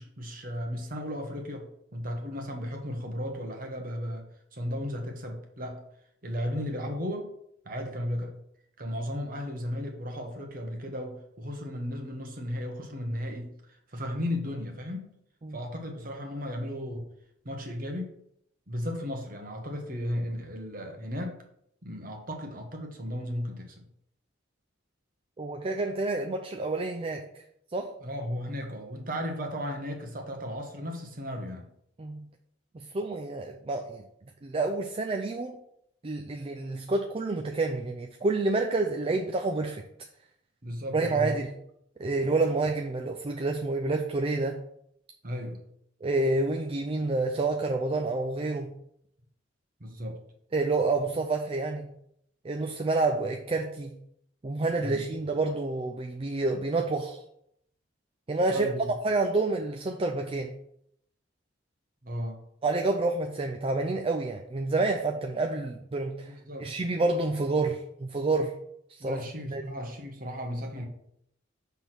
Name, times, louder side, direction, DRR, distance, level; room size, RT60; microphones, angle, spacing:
voice 1, 0.0-5.8 6.2-7.3 7.6-8.4 8.8-15.1 15.5-17.1 17.4-18.1 18.7-21.4 21.8-23.8 28.0-31.7 40.6-41.4 45.2-45.6 49.8-50.2 54.8-55.1 58.5-58.9 62.0-62.4 66.2-66.7 69.0-70.9, equal, 45° right, 3 dB, 1.2 m, -35 dB
voice 2, 25.4-27.4 27.7-27.9 32.0-32.3 32.7-34.0 34.4-35.6 36.0-39.8 40.9-41.6 42.0-44.6 46.0-48.7 50.5-51.9 52.4-54.0 54.4-57.2 58.3-58.7 59.0-60.6 62.6-66.3 66.6-68.6 68.9-69.8, right 3 dB, 30° right, 4 dB, 0.4 m, -28 dB
6.2 x 3.5 x 5.9 m, 0.74 s
head